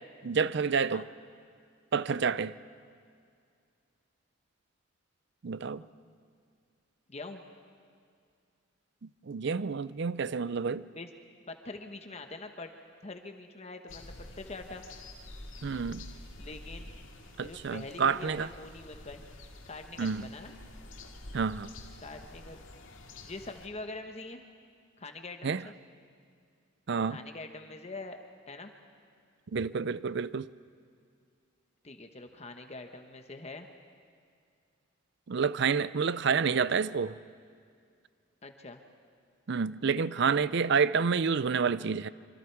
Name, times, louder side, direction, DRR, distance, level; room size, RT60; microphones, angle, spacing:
voice 1, 0.2-1.1 1.9-2.6 5.4-5.8 9.0-10.9 15.6-16.1 17.4-18.5 20.0-20.3 21.3-21.7 25.4-25.6 26.9-27.2 29.5-30.5 35.3-37.2 39.5-42.1, right 5 dB, 55° right, 0.5 m, -29 dB
voice 2, 5.8-6.1 7.1-7.4 10.9-11.1 11.5-12.7 13.0-14.8 16.4-17.0 17.4-19.2 19.7-20.5 22.0-22.6 23.2-24.4 25.0-25.7 27.1-28.2 28.5-28.7 31.8-33.7 38.4-38.8, left 3 dB, 30° left, 1.1 m, -44 dB
sound 1, 13.9-23.7, left 1 dB, 75° left, 2.1 m, -48 dB
26.0 x 25.0 x 4.6 m
head